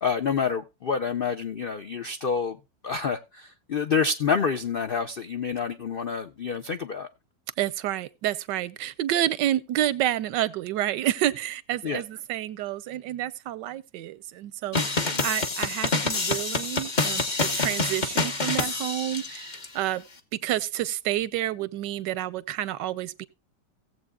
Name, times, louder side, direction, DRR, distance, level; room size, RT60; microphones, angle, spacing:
voice 1, 0.0-2.6 2.8-7.1 11.8-12.0, left 5 dB, 70° left, 0.5 m, -28 dB
voice 2, 7.6-20.0 20.4-23.3, right 13 dB, 85° right, 1.3 m, -29 dB
sound 1, 14.7-19.7, left 3 dB, 30° left, 1.1 m, -27 dB
17.0 x 7.8 x 2.3 m
omnidirectional pair, 1.8 m